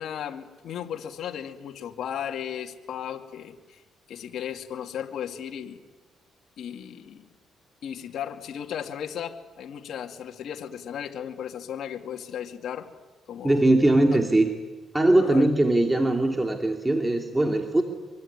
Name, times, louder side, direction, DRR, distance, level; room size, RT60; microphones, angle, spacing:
voice 1, 0.0-3.8 4.1-5.8 6.6-7.3 7.8-12.9 13.3-13.6 15.2-15.5, left 9 dB, 70° left, 3 dB, 2.5 m, -35 dB
voice 2, 13.4-14.5 14.9-17.8, right 1 dB, 15° right, 4 dB, 2.7 m, -21 dB
24.5 x 24.5 x 9.8 m, 1.2 s
cardioid pair, 90°, 0 cm